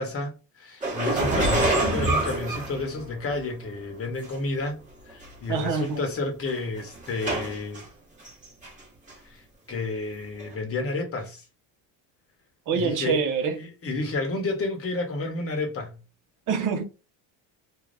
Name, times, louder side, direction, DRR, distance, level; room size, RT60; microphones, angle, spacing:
voice 1, 0.0-4.8 5.1-7.8 9.2-9.4 9.7-11.4 12.7-13.2 13.6-16.0, left 3 dB, 30° left, 1.1 m, -31 dB
sound 1, 0.8-3.4 4.2-4.3 5.2-5.3 5.6-5.9 6.5-7.8 8.2-8.8 9.1-9.2 10.4-10.5, right 2 dB, 15° right, 1.2 m, -26 dB
voice 2, 5.5-6.0 12.7-13.6 16.5-16.8, right 6 dB, 40° right, 0.7 m, -26 dB
2.6 x 2.3 x 3.2 m
cardioid pair, 120°, 49 cm